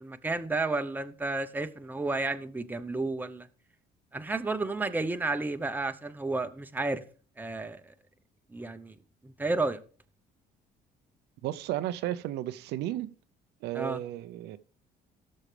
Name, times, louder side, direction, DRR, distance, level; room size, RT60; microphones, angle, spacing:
voice 1, 0.0-3.5 4.1-7.0 7.4-7.9 8.5-8.9 9.2-9.8 13.7-14.0, right 3 dB, 10° right, 0.8 m, -32 dB
voice 2, 11.4-13.1 13.6-14.6, right 13 dB, 80° right, 0.6 m, -33 dB
16.5 x 6.4 x 3.3 m
cardioid pair, 110°, 17 cm